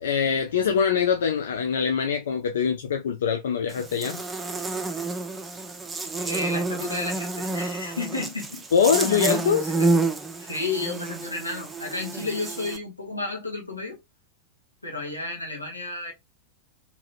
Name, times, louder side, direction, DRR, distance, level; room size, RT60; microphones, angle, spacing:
voice 1, 0.0-4.2 8.7-9.7, left 7 dB, 65° left, 0.4 m, -23 dB
Buzz, 3.7-12.8, right 2 dB, 15° right, 0.6 m, -29 dB
voice 2, 6.1-8.6 9.1-9.3 10.4-14.0 14.8-16.1, left 3 dB, 85° left, 1.1 m, -32 dB
2.9 x 2.9 x 2.5 m
figure-of-eight pair, 90°, 0 cm